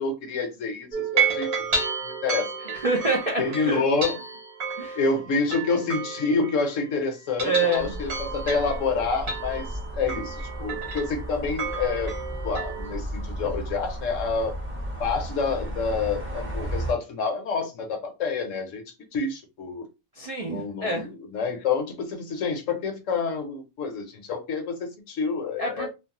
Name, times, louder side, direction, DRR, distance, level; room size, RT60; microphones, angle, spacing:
voice 1, 0.0-2.8 3.4-4.2 4.9-12.1 12.4-14.6 15.0-19.9 20.5-25.9, left 4 dB, 65° left, 1.0 m, -28 dB
sound 1, 0.9-6.9 7.2-12.9, right 5 dB, 85° right, 1.7 m, -31 dB
voice 2, 2.7-3.8 4.8-5.0 7.4-8.0 20.2-21.1 25.6-25.9, right 2 dB, 50° right, 0.4 m, -27 dB
sound 2, 7.8-16.9, right 1 dB, 10° right, 0.7 m, -34 dB
3.1 x 2.0 x 2.8 m
omnidirectional pair, 1.5 m